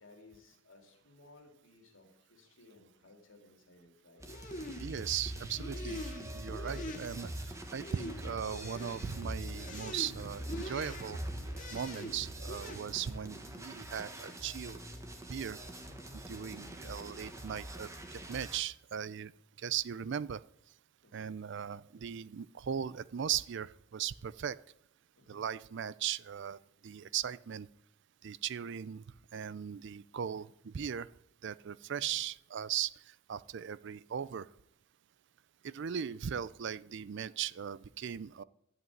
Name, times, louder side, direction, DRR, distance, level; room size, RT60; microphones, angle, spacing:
voice 1, 0.0-4.3 16.3-16.7 21.0-21.3 25.2-25.4 31.9-32.2, left 2 dB, 75° left, 3 dB, 2.7 m, -60 dB
sound 1, 4.2-18.6, right 1 dB, 15° right, 1.4 m, -46 dB
sound 2, 4.3-12.8, equal, 40° left, 1.9 m, -43 dB
voice 2, 4.8-7.3 7.7-11.2 11.7-14.8 15.3-15.6 16.3-19.3 19.6-20.4 21.1-24.6 25.3-26.6 26.8-27.7 28.2-29.0 29.3-31.1 31.4-32.9 33.3-34.5 35.6-38.4, right 8 dB, 60° right, 19 dB, 0.4 m, -38 dB
12.5 x 6.1 x 9.2 m, 0.78 s
head